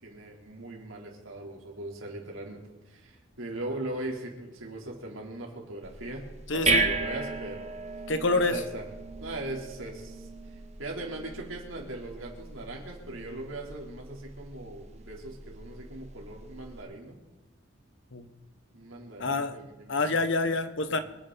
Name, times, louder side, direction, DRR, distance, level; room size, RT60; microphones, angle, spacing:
voice 1, 0.0-6.3 6.5-7.7 8.5-8.8 9.2-10.3 10.8-17.2 18.7-20.2 20.9-21.0, right 2 dB, 80° right, 0 dB, 3.6 m, -39 dB
sound 1, 5.8-16.8, right 3 dB, 35° right, 0.9 m, -35 dB
voice 2, 6.5-6.9 8.1-8.6 18.1-18.3 19.2-19.6 19.9-21.0, left 3 dB, 65° left, 10 dB, 1.2 m, -27 dB
25.5 x 9.4 x 4.1 m, 1.2 s
head